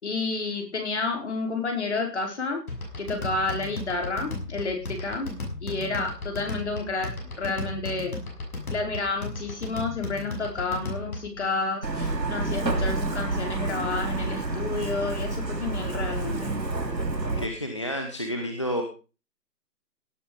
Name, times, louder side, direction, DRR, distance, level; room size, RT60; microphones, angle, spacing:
voice 1, 0.0-2.6 3.0-5.3 5.6-8.1 8.7-16.5, left 3 dB, 45° left, 3 dB, 4.9 m, -30 dB
sound 1, 2.7-11.4, left 2 dB, 60° left, 6.6 m, -35 dB
Truck, 11.8-17.4, right 2 dB, 85° right, 3.8 m, -29 dB
voice 2, 17.4-18.8, equal, 20° left, 3 dB, 0.9 m, -30 dB
17.5 x 8.2 x 5.3 m, 0.34 s
figure-of-eight pair, 165°, 49 cm